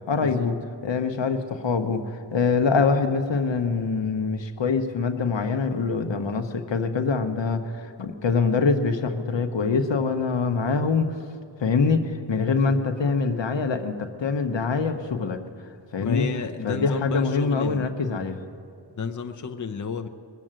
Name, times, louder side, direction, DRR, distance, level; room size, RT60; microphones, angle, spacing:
voice 1, 0.1-0.6 0.8-11.1 11.6-15.4 15.9-16.3 16.6-18.4, left 4 dB, 90° left, 7 dB, 1.0 m, -24 dB
voice 2, 16.0-17.9 19.0-20.1, left 5 dB, 45° left, 6 dB, 0.7 m, -32 dB
20.5 x 7.5 x 8.9 m, 2.3 s
wide cardioid pair, 90°, 43 cm